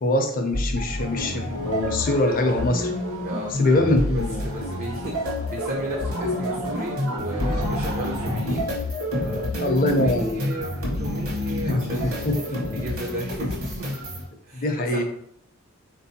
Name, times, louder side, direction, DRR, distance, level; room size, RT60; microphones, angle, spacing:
voice 1, 0.0-2.9 3.6-4.4 9.6-10.4 11.6-12.6 14.5-15.0, left 1 dB, 40° left, 4 dB, 0.5 m, -23 dB
sound 1, 0.5-14.2, left 1 dB, 70° right, 1.1 m, -28 dB
sound 2, 1.0-8.4, right 1 dB, 90° right, 0.8 m, -36 dB
voice 2, 3.2-3.7 4.1-8.7 9.1-13.9 14.4-15.0, right 1 dB, 35° right, 0 dB, 0.4 m, -35 dB
4.1 x 2.6 x 2.7 m, 0.68 s
head